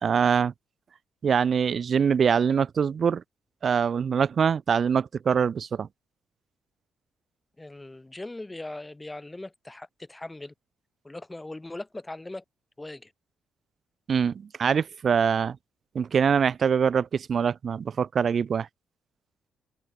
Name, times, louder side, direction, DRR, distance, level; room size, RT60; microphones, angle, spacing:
voice 1, 0.0-0.5 1.2-3.2 3.6-5.9 14.1-15.6 15.9-18.7, right 7 dB, 50° right, 0.3 m, -24 dB
voice 2, 7.6-10.5 11.0-12.4 12.8-13.1, left 2 dB, 15° left, 1.5 m, -40 dB
open air
cardioid pair, 90°, 0 cm